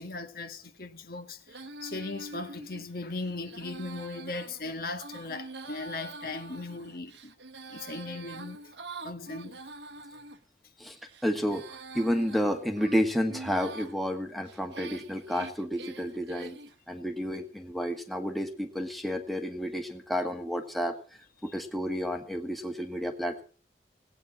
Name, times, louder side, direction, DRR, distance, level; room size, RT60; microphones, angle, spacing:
voice 1, 0.0-7.3 7.7-8.7 9.0-9.6 21.4-21.5, left 3 dB, 55° left, 1.5 m, -38 dB
Female singing, 1.5-10.4 11.0-13.9 14.5-16.8, right 2 dB, 80° right, 1.3 m, -45 dB
voice 2, 11.2-16.6 16.9-20.9 21.4-23.4, equal, ahead, 1.5 m, -31 dB
18.0 x 9.0 x 7.3 m
head